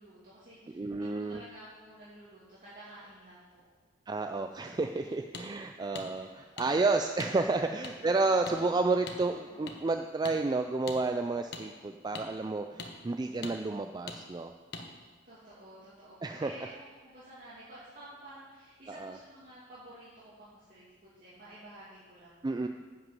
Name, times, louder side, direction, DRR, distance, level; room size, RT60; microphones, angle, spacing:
voice 1, 0.0-3.7 4.9-5.0 7.5-8.0 8.4-9.7 15.2-22.7, right 1 dB, 45° right, -10 dB, 2.5 m, -51 dB
voice 2, 0.7-1.4 4.1-6.3 6.6-14.5 16.2-16.5 19.0-19.1 22.4-22.7, right 3 dB, 20° right, 6 dB, 0.3 m, -30 dB
sound 1, 5.3-5.5 6.0-6.1 6.6-6.7 7.2-7.3 7.8-7.9 8.5-8.6 9.1-9.2 9.7-9.8 10.2-10.4 10.9-11.0 11.5-11.6 12.1-12.3 12.8-12.9 13.4-13.6 14.1-14.2 14.7-14.9, left 4 dB, 60° left, 1.1 m, -41 dB
Bowed string instrument, 6.0-10.7, left 1 dB, 15° left, 3.9 m, -63 dB
10.5 x 5.9 x 7.6 m, 1.4 s
head